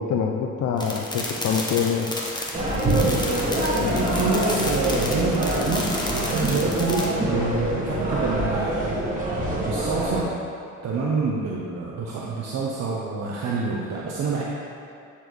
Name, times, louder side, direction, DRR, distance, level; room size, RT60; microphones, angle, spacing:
voice 1, 0.0-2.1 3.7-4.0, left 6 dB, 65° left, 1 dB, 0.5 m, -25 dB
sound 1, 0.8-7.1, left 1 dB, 15° left, 1.0 m, -32 dB
sound 2, 2.5-10.2, right 1 dB, 25° right, 1.5 m, -25 dB
voice 2, 3.8-9.0 9.6-10.3 10.8-14.4, right 4 dB, 60° right, -4 dB, 0.8 m, -27 dB
9.0 x 4.1 x 3.1 m, 2.4 s
cardioid pair, 90°, 30 cm